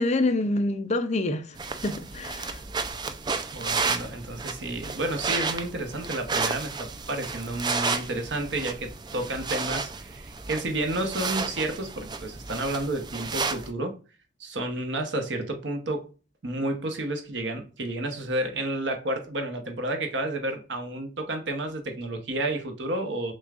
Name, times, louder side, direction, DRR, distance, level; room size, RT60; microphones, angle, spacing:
voice 1, 0.0-1.4 1.8-2.5, left 2 dB, 35° left, 0.5 m, -26 dB
sound 1, 1.6-13.7, right 4 dB, 25° right, 0.4 m, -32 dB
voice 2, 3.5-14.0 14.4-16.1 16.4-23.3, right 1 dB, 65° right, 0.9 m, -31 dB
6.2 x 2.4 x 2.4 m
head